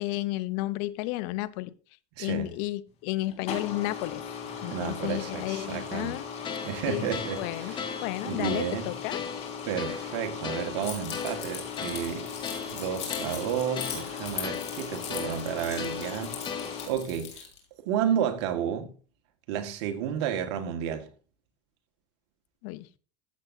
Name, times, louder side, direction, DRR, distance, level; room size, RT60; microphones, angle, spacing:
voice 1, 0.0-1.7 2.2-4.2 4.6-6.3 6.9-7.8 8.0-9.2 22.6-22.9, left 17 dB, 65° left, 0.8 m, -32 dB
voice 2, 2.2-2.5 4.5-6.2 6.6-7.8 8.2-9.0 9.7-12.3 12.7-16.4 16.9-17.4 17.8-18.9 19.5-21.1, right 9 dB, 70° right, 1.7 m, -31 dB
sound 1, 3.2-16.9, left 6 dB, 50° left, 3.3 m, -38 dB
sound 2, 6.4-17.1, left 6 dB, 30° left, 1.5 m, -39 dB
Keys jangling, 10.8-17.6, left 8 dB, 90° left, 3.3 m, -40 dB
14.5 x 7.6 x 2.7 m
hypercardioid pair, 100°, 15 cm